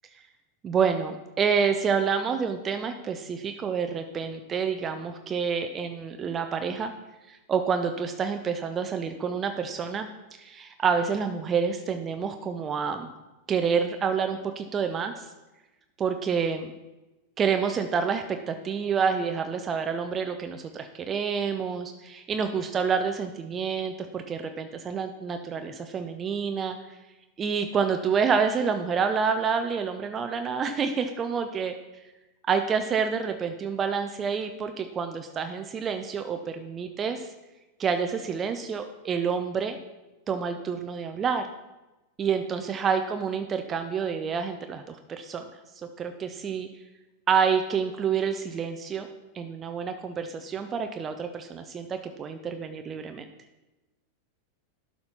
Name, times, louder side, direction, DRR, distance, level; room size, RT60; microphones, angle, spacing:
voice 1, 0.6-6.9 7.3-10.1 10.4-13.1 13.5-15.3 16.0-16.7 17.4-27.0 27.4-31.7 32.5-37.3 37.8-39.8 40.3-41.5 42.2-45.4 46.0-46.7 47.3-49.1 49.3-53.2, right 6 dB, 25° right, 6 dB, 0.6 m, -28 dB
11.5 x 4.3 x 5.7 m, 1.1 s
figure-of-eight pair, 90°, 0 cm